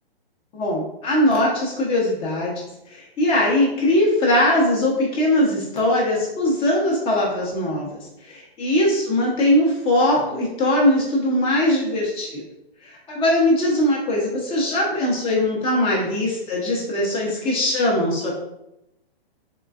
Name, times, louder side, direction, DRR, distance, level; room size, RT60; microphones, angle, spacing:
voice 1, 0.5-2.5 2.9-12.4 12.8-18.3, left 1 dB, 20° left, -3 dB, 0.7 m, -21 dB
3.7 x 3.2 x 2.4 m, 0.85 s
hypercardioid pair, 135°, 30 cm